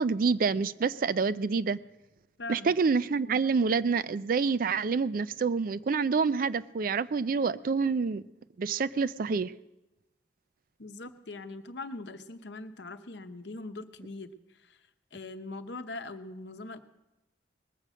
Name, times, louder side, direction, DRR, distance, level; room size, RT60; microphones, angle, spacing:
voice 1, 0.0-1.8 2.5-8.2 8.6-9.5, right 5 dB, 50° right, 0.4 m, -27 dB
voice 2, 10.8-14.3 14.6-14.8 15.1-16.8, left 2 dB, 70° left, 0.9 m, -41 dB
20.0 x 7.7 x 6.2 m
head